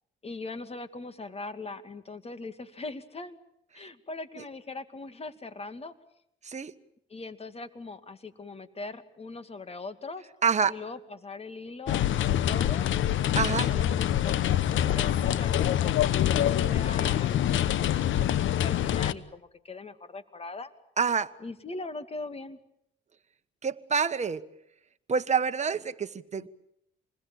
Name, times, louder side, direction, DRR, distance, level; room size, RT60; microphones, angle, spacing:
voice 1, 0.2-3.4 3.7-5.9 7.1-10.3 10.7-12.9 13.5-14.4 14.7-20.7 21.4-22.6 26.3-26.5, left 3 dB, 30° left, 11 dB, 2.5 m, -41 dB
voice 2, 10.4-10.7 13.3-13.7 21.0-21.3 23.6-24.4 25.1-26.5, right 6 dB, 35° right, 9 dB, 1.5 m, -27 dB
sound 1, 11.9-19.1, left 11 dB, 75° left, 1.1 m, -25 dB
27.5 x 21.0 x 9.0 m, 0.75 s
cardioid pair, 90°, 20 cm